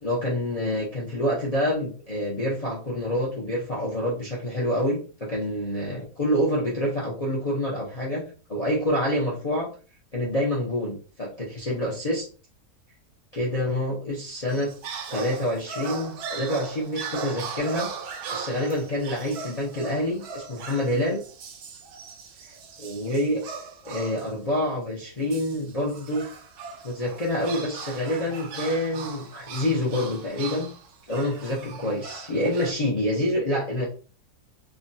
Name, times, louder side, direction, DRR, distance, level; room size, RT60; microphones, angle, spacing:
voice 1, 0.0-8.2 8.5-9.7 10.1-12.3 13.3-14.7 15.1-17.9 18.3-21.2 22.8-23.4 23.8-26.2 26.8-30.7 31.1-33.9, left 1 dB, 55° left, -5 dB, 0.4 m, -27 dB
sound 1, 14.5-24.4 25.3-32.7, right 5 dB, 70° right, 1.1 m, -38 dB
3.4 x 2.2 x 2.6 m, 0.37 s
omnidirectional pair, 1.8 m